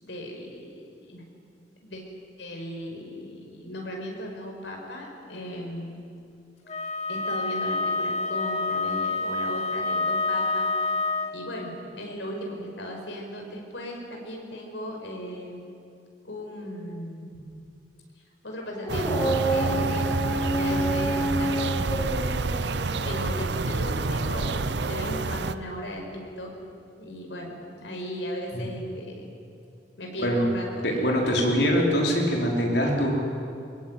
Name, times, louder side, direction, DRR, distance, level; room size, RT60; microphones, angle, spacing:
voice 1, 0.0-1.2 1.8-2.0 2.4-6.0 7.1-10.9 11.3-15.6 16.2-17.5 18.4-22.2 23.0-26.5 27.0-29.3 30.0-31.4, equal, 85° left, 1 dB, 5.5 m, -37 dB
Wind instrument woodwind instrument, 6.7-11.4, left 3 dB, 40° left, 1.7 m, -27 dB
Dog, 18.6-25.3, right 1 dB, 20° left, 3.5 m, -30 dB
sound 1, 18.9-25.5, right 3 dB, 70° right, 0.8 m, -28 dB
voice 2, 30.8-33.4, equal, 65° left, -1 dB, 5.0 m, -23 dB
23.0 x 22.0 x 9.3 m, 2.5 s
head